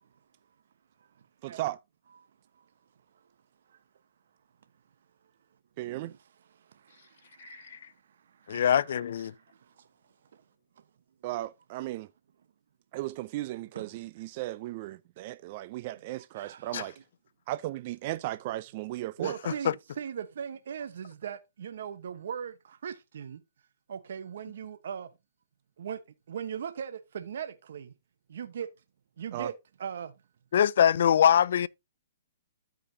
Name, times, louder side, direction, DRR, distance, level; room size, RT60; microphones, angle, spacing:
voice 1, 1.4-1.8 5.8-6.1 11.2-12.1 12.9-16.9 17.5-19.5 29.3-29.5, right 16 dB, 40° right, 0.4 m, -36 dB
voice 2, 5.8-6.2 6.5-7.9 8.3-9.0 9.6-9.9 10.3-10.4 13.7-14.1 16.3-16.7 19.2-23.4 23.9-25.1 25.8-26.0 26.3-27.9 28.3-28.7 29.2-29.5 29.8-30.1, right 8 dB, 65° right, 1.0 m, -39 dB
voice 3, 7.4-7.8 8.5-9.3 16.7-16.8 19.6-19.7 30.5-31.7, left 9 dB, 65° left, 0.4 m, -23 dB
13.5 x 5.1 x 2.7 m
hypercardioid pair, 140°, 0 cm